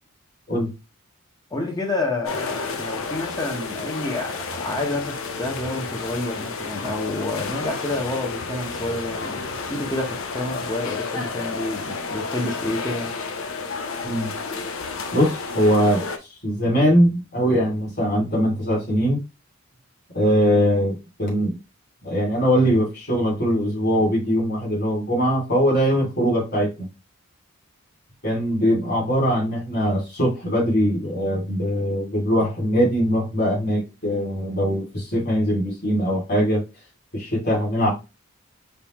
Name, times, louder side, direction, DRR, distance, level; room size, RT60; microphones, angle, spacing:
voice 1, 1.5-13.1, left 2 dB, 20° left, 0.9 m, -29 dB
sound 1, 2.2-16.2, left 4 dB, 65° left, 0.6 m, -31 dB
voice 2, 15.1-16.0 16.4-19.2 20.1-21.6 22.0-26.9 28.2-36.6 37.1-37.9, equal, 50° left, 2.5 m, -21 dB
5.3 x 2.6 x 3.0 m
head